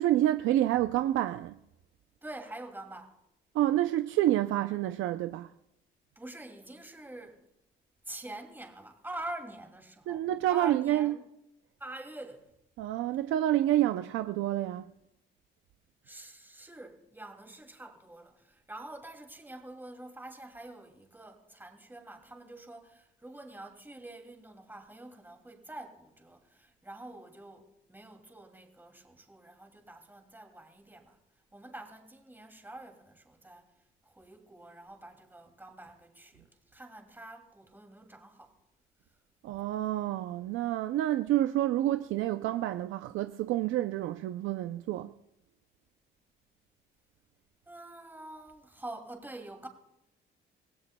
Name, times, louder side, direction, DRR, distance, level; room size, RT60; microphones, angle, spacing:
voice 1, 0.0-1.6 3.5-5.5 10.1-11.2 12.8-14.9 39.4-45.1, right 13 dB, 85° right, 0.5 m, -28 dB
voice 2, 2.2-3.2 6.2-7.4 8.1-11.2 11.8-12.5 16.0-31.2 31.5-33.7 34.0-38.6 47.7-49.7, right 1 dB, 10° right, 2.5 m, -46 dB
24.5 x 16.5 x 2.2 m
cardioid pair, 90°, 20 cm